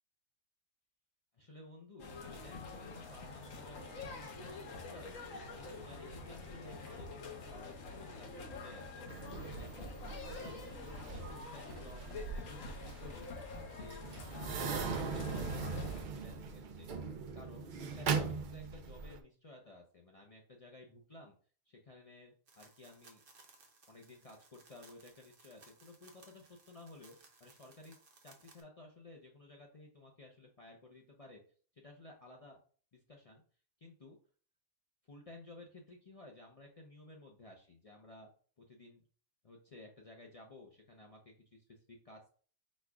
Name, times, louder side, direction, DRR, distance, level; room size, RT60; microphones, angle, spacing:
voice 1, 1.3-5.1 5.5-9.0 9.5-9.9 10.2-13.3 13.7-16.9 17.3-21.3 21.7-23.2 23.9-31.4 31.7-32.6 32.9-33.4 33.8-34.2 35.0-38.3 38.6-39.0 39.4-42.3, left 2 dB, 45° left, 0 dB, 0.4 m, -55 dB
sound 1, 2.0-16.0, left 3 dB, 70° left, 1.2 m, -47 dB
sound 2, 9.1-19.2, right 5 dB, 75° right, 0.4 m, -40 dB
sound 3, 22.5-28.6, right 3 dB, 45° right, 0.8 m, -63 dB
4.2 x 2.3 x 4.7 m, 0.42 s
omnidirectional pair, 1.5 m